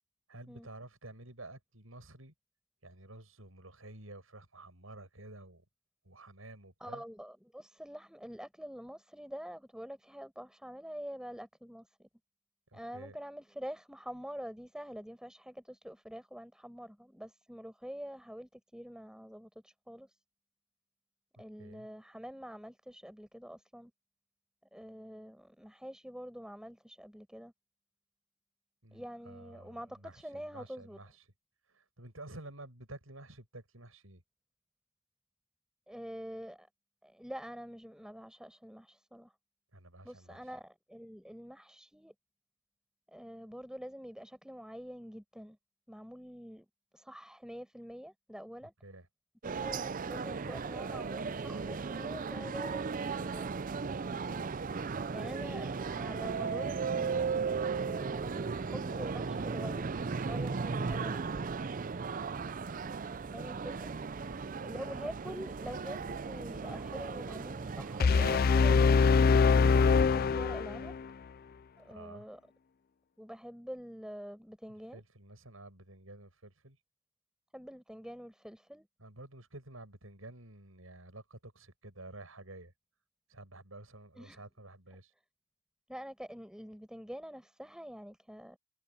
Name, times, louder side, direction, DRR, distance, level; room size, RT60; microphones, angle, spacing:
voice 1, 0.3-2.3 2.8-5.6 6.0-7.0 12.7-13.2 21.6-21.9 28.8-31.3 31.6-34.2 39.7-40.6 48.8-49.1 64.2-64.8 71.9-72.3 74.9-76.8 79.0-82.7 83.3-85.1, right 2 dB, 90° right, 7.8 m, -51 dB
voice 2, 6.8-12.1 12.7-20.2 21.4-23.9 24.7-27.5 28.9-31.0 35.9-36.7 37.0-39.3 40.0-42.1 43.1-45.6 45.9-46.7 46.9-48.7 49.4-53.5 54.1-54.5 55.1-57.4 57.7-61.2 63.3-63.9 64.6-69.2 69.9-70.9 71.8-72.4 73.2-75.0 77.5-78.9 84.2-84.4 85.9-88.6, equal, 5° right, 6.4 m, -46 dB
sound 1, 49.4-68.4, right 5 dB, 40° right, 0.5 m, -36 dB
sound 2, 68.0-71.0, left 5 dB, 45° left, 0.4 m, -24 dB
head